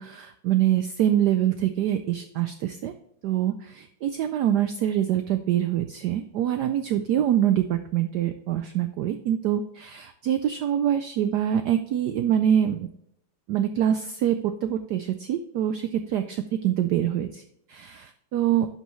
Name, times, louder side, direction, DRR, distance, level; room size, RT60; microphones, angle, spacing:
voice 1, 0.0-2.9 3.2-12.9 13.5-16.4 16.6-17.4 17.7-18.7, right 10 dB, 90° right, 9 dB, 0.9 m, -25 dB
10.5 x 5.5 x 3.1 m, 0.73 s
omnidirectional pair, 2.3 m